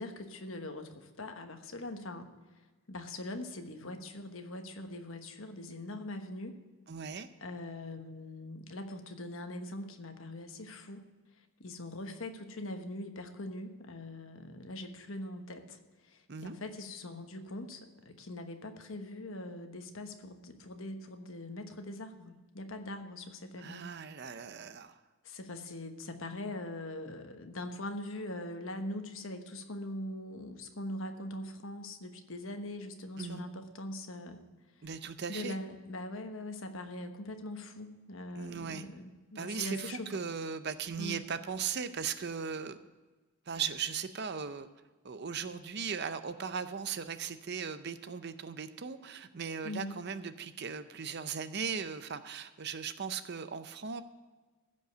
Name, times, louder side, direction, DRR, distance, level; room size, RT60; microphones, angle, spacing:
voice 1, 0.0-2.3 2.9-6.6 7.4-11.1 11.4-23.8 25.2-34.4 35.3-40.2 41.0-41.2 49.6-50.1, left 1 dB, 65° left, 6 dB, 1.2 m, -42 dB
voice 2, 6.9-7.3 16.3-16.6 23.6-25.0 33.2-33.4 34.8-35.6 38.3-38.9 39.4-42.8 43.5-44.7 45.0-54.0, right 6 dB, 50° right, 11 dB, 0.6 m, -38 dB
15.0 x 5.4 x 7.9 m, 1.3 s
head